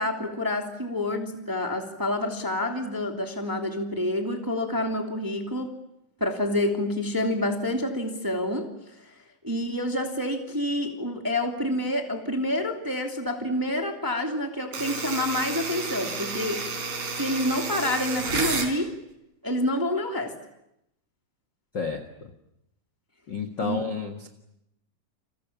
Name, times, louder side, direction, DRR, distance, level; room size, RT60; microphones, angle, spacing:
voice 1, 0.0-5.7 6.2-8.7 9.4-16.6 17.2-18.9 19.4-20.4 23.6-23.8, left 1 dB, 5° right, 3 dB, 1.9 m, -28 dB
sound 1, 14.7-18.7, right 4 dB, 65° right, 6.1 m, -31 dB
voice 2, 21.7-22.3 23.3-24.3, left 5 dB, 45° left, 5 dB, 1.6 m, -31 dB
30.0 x 27.0 x 7.3 m, 0.84 s
omnidirectional pair, 4.4 m